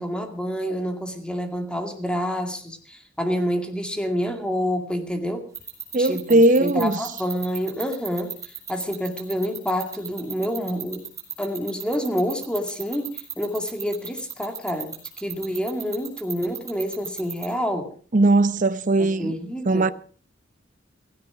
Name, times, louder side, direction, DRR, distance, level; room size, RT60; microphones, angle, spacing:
voice 1, 0.0-5.4 6.0-8.3 8.7-11.0 11.4-17.9 19.0-19.9, equal, 5° left, 2.1 m, -28 dB
sound 1, 5.5-17.5, right 7 dB, 20° right, 4.2 m, -34 dB
voice 2, 5.9-7.0 18.1-19.3 19.7-19.9, right 2 dB, 40° right, 0.7 m, -18 dB
16.5 x 16.0 x 4.9 m
head